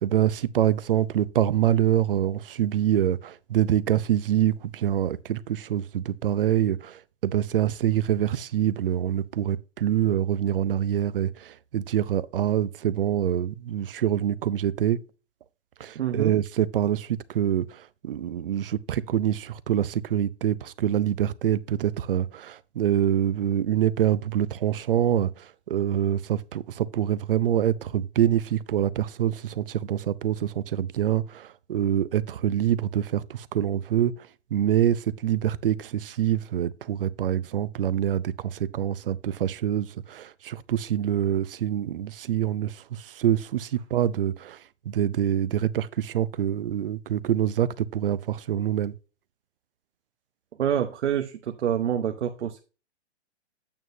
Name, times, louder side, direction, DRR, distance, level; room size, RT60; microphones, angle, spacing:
voice 1, 0.0-15.0 15.8-34.1 34.5-44.6 44.9-48.9, right 11 dB, 50° right, 0.6 m, -25 dB
voice 2, 15.9-16.3 50.6-52.6, right 9 dB, 75° right, 1.0 m, -27 dB
9.2 x 8.8 x 2.6 m
hypercardioid pair, 160°, 35 cm